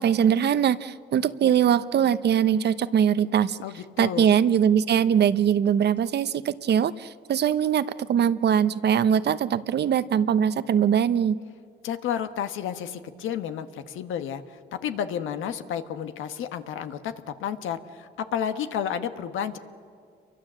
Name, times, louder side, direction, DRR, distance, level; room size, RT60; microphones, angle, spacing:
voice 1, 0.0-3.6 4.0-11.4, right 8 dB, 55° right, 14 dB, 0.8 m, -22 dB
voice 2, 3.6-4.3 11.8-17.1 17.4-19.6, left 9 dB, 85° left, 9 dB, 1.3 m, -31 dB
28.0 x 23.5 x 7.5 m, 2.2 s
cardioid pair, 90°, 20 cm